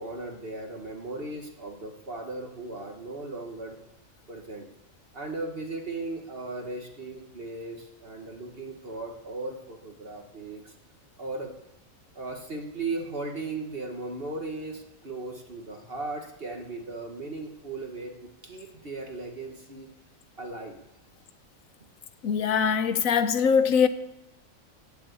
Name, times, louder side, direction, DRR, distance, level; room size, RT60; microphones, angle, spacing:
voice 1, 0.0-3.8 4.3-4.7 5.1-10.7 11.2-11.5 12.2-19.9 20.4-20.8, right 2 dB, 45° right, 1.7 m, -37 dB
voice 2, 22.2-23.9, left 6 dB, 75° left, 1.2 m, -22 dB
16.0 x 7.2 x 8.3 m
omnidirectional pair, 1.4 m